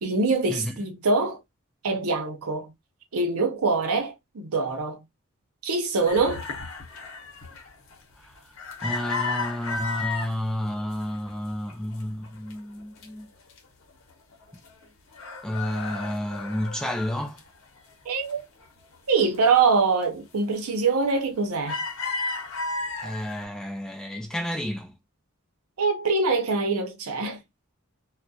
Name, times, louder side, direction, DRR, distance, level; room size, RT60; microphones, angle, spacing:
voice 1, 0.0-1.4 1.8-2.7 3.1-5.0 5.6-6.4 18.1-18.4 19.1-21.8 25.8-27.4, right 4 dB, 90° right, 0.6 m, -24 dB
sound 1, 6.0-10.3 10.8-11.4 11.7-13.1 13.5-13.6 13.9-14.8 15.1-17.9 18.3-19.4 19.8-20.0 20.5-20.9 21.2-23.4, left 3 dB, 65° left, 0.8 m, -34 dB
voice 2, 8.8-13.3 15.4-17.4 23.0-24.9, left 1 dB, 5° left, 0.3 m, -31 dB
2.3 x 2.1 x 2.6 m
head